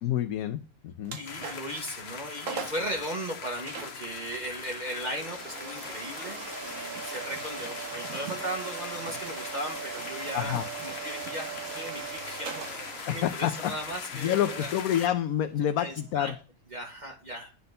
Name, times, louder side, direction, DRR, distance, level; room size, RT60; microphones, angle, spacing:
voice 1, 0.0-1.2 10.3-10.7 13.1-13.7 14.2-16.3, left 11 dB, 90° left, 8 dB, 1.2 m, -28 dB
Vacuum cleaner, 1.0-1.8 2.2-2.3 2.5-2.9 3.7-16.4, right 6 dB, 65° right, 1.5 m, -40 dB
voice 2, 1.1-14.7 15.8-16.3 16.7-17.5, right 1 dB, 30° right, -1 dB, 1.8 m, -37 dB
sound 1, 1.3-15.1, left 6 dB, 50° left, 1.2 m, -41 dB
9.6 x 4.2 x 6.5 m, 0.35 s
omnidirectional pair, 1.5 m